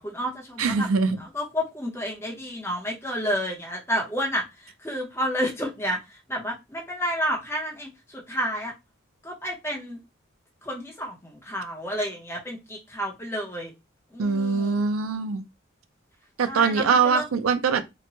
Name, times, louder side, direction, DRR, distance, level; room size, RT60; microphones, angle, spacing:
voice 1, 0.0-0.9 1.2-8.7 9.2-10.0 10.6-13.7 14.1-14.8 16.4-17.3, equal, 10° left, 0.7 m, -30 dB
voice 2, 0.6-1.2 14.2-15.5 16.4-17.8, right 5 dB, 90° right, 0.4 m, -23 dB
2.8 x 2.1 x 2.8 m
head